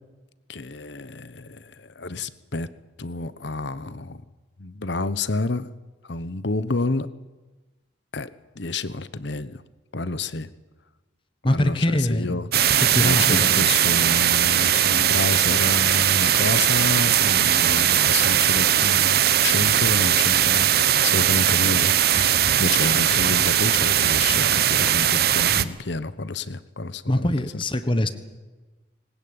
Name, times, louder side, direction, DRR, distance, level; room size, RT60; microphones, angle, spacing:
voice 1, 0.5-2.7 3.0-4.2 4.6-5.7 6.0-7.1 8.1-8.3 8.6-9.6 9.9-10.5 11.4-27.3, left 3 dB, 70° left, 15 dB, 1.0 m, -29 dB
voice 2, 11.4-12.4 12.8-13.5 27.1-28.1, left 1 dB, 25° left, 11 dB, 1.3 m, -23 dB
sound 1, 12.5-25.6, right 10 dB, 55° right, 0.8 m, -19 dB
20.5 x 19.0 x 8.9 m, 1.2 s
head